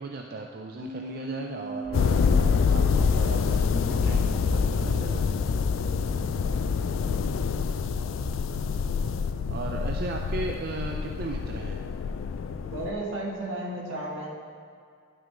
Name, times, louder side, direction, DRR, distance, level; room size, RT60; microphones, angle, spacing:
voice 1, 0.0-5.3 9.5-11.9, right 3 dB, 50° right, 2 dB, 0.4 m, -36 dB
sound 1, 0.8-7.5, right 1 dB, 25° left, 1.4 m, -41 dB
sound 2, 1.8-7.8, left 1 dB, 65° left, 1.1 m, -46 dB
sound 3, 1.9-12.9, left 5 dB, 80° left, 0.3 m, -26 dB
voice 2, 5.9-6.5 9.5-9.6 12.6-14.3, right 1 dB, 80° right, -3 dB, 1.7 m, -35 dB
11.0 x 6.0 x 3.8 m, 2.3 s
head